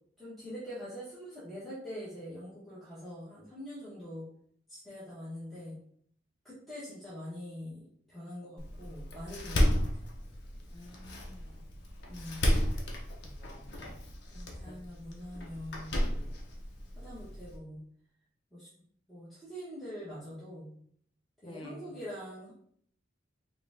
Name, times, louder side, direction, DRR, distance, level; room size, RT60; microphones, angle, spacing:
voice 1, 0.2-4.2 4.7-5.8 6.4-9.9 12.1-12.5 14.3-16.3 16.9-17.8 18.5-18.7 19.1-20.7 21.4-22.5, equal, ahead, -11 dB, 1.2 m, -44 dB
Door, 8.6-17.6, equal, 60° left, 0.8 m, -33 dB
voice 2, 10.7-11.6 13.2-13.8 14.7-14.8 21.4-22.0, left 1 dB, 25° left, 3 dB, 0.5 m, -50 dB
4.8 x 2.4 x 3.5 m, 0.63 s
head